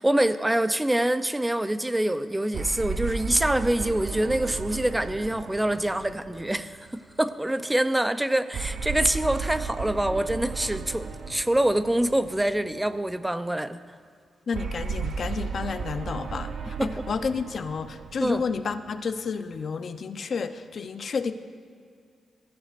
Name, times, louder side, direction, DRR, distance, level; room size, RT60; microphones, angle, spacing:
voice 1, 0.0-13.8 16.8-16.9 18.2-18.4, right 1 dB, 10° right, 11 dB, 0.6 m, -25 dB
sound 1, 2.5-7.1 8.5-12.9 14.5-19.1, right 5 dB, 65° right, 0.7 m, -35 dB
voice 2, 14.5-21.3, left 5 dB, 55° left, 9 dB, 0.8 m, -31 dB
22.5 x 14.0 x 2.6 m, 2.2 s
cardioid pair, 90°, 0 cm